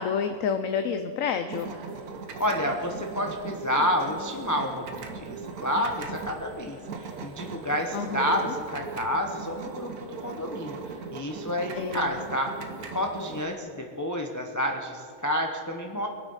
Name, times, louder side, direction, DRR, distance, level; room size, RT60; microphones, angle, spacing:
voice 1, 0.0-1.7 7.9-8.5 11.7-12.1, left 6 dB, 65° left, 8 dB, 1.0 m, -29 dB
sound 1, 1.5-13.5, right 4 dB, 80° right, 1.5 m, -38 dB
voice 2, 2.4-12.5 12.9-16.1, equal, 15° left, 2 dB, 0.7 m, -29 dB
22.5 x 8.1 x 5.5 m, 2.3 s
omnidirectional pair, 1.6 m